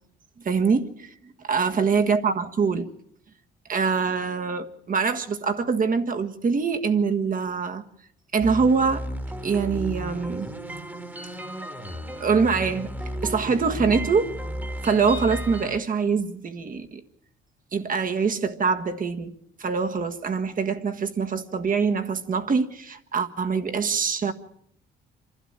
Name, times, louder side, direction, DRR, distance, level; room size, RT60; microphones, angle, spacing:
voice 1, 0.5-1.1 1.4-2.9 3.7-7.8 8.3-9.1 9.4-10.5 12.2-12.9 13.2-14.3 14.8-17.0 17.7-19.3 19.6-24.3, right 5 dB, 45° right, 1.6 m, -24 dB
sound 1, 8.4-15.8, equal, 10° right, 1.7 m, -34 dB
27.0 x 12.0 x 8.9 m
cardioid pair, 90°, 20 cm